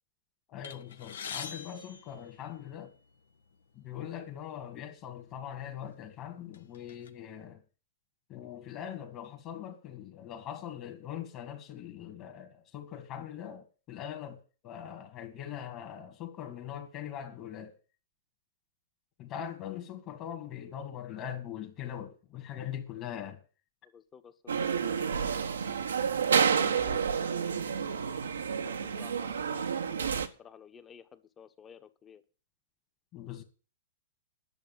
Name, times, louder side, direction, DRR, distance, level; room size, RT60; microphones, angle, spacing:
voice 1, 0.5-2.9 3.7-7.6 8.3-17.7 19.2-23.4 33.1-33.4, left 10 dB, 35° left, 2.2 m, -41 dB
sound 1, 0.6-3.0 3.8-3.9 4.3-4.4 5.3-5.4 5.9-7.1, left 7 dB, 75° left, 1.3 m, -44 dB
voice 2, 23.9-25.4 26.4-27.6 28.6-32.2, left 7 dB, 20° left, 1.3 m, -54 dB
sound 2, 24.5-30.3, right 6 dB, 85° right, 1.3 m, -29 dB
10.5 x 7.0 x 9.2 m
hypercardioid pair, 120°, 0 cm